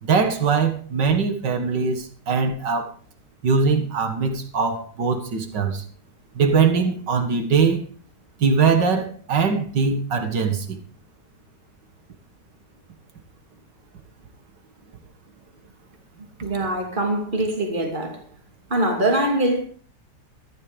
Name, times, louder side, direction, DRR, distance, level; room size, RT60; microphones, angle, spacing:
voice 1, 0.0-2.9 3.4-5.8 6.4-7.8 8.4-10.8, right 5 dB, 70° right, 2.5 m, -21 dB
voice 2, 16.4-18.3 18.7-19.6, right 1 dB, 25° right, 2.7 m, -23 dB
14.0 x 11.0 x 5.2 m
omnidirectional pair, 2.0 m